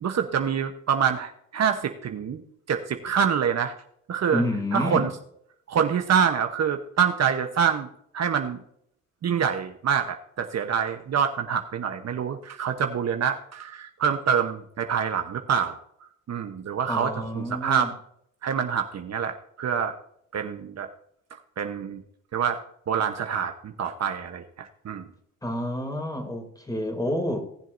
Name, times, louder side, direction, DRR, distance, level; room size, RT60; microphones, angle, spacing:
voice 1, 0.0-2.4 2.7-3.7 4.1-4.4 4.7-5.1 5.7-7.9 8.1-8.6 9.2-15.8 16.3-17.9 18.4-19.9 20.3-20.9 21.6-22.0 22.3-25.1, right 7 dB, 50° right, 6 dB, 1.1 m, -26 dB
voice 2, 4.3-5.0 16.9-17.9 25.4-27.4, left 1 dB, 10° left, 4 dB, 3.0 m, -29 dB
18.5 x 7.4 x 2.7 m, 0.69 s
cardioid pair, 90°, 34 cm